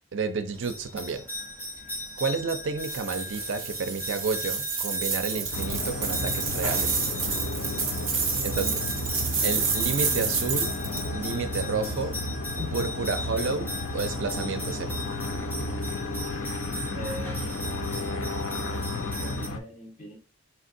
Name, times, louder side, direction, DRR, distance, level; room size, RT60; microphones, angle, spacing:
voice 1, 0.1-1.2 2.2-7.4 8.4-8.9 9.4-10.7 11.1-12.1 12.7-15.0, right 4 dB, 65° right, 0.5 m, -31 dB
sound 1, 0.5-19.5, left 1 dB, 10° left, 0.8 m, -38 dB
sound 2, 2.8-11.1, right 5 dB, 40° right, 1.0 m, -29 dB
sound 3, 5.5-19.6, left 2 dB, 80° left, 0.6 m, -33 dB
voice 2, 16.4-17.6 18.5-20.2, left 1 dB, 35° left, 1.7 m, -41 dB
4.4 x 3.5 x 2.6 m
head